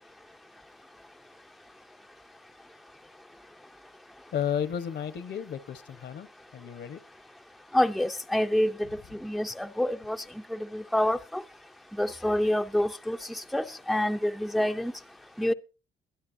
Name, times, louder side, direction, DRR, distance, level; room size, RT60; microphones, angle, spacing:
voice 1, 4.3-6.3 6.5-7.0, left 8 dB, 60° left, 1.1 m, -33 dB
voice 2, 7.7-8.9 9.2-10.2 10.5-11.4 12.0-14.9 15.4-15.5, left 1 dB, ahead, 0.6 m, -27 dB
22.0 x 10.5 x 2.7 m
cardioid pair, 90°, 20 cm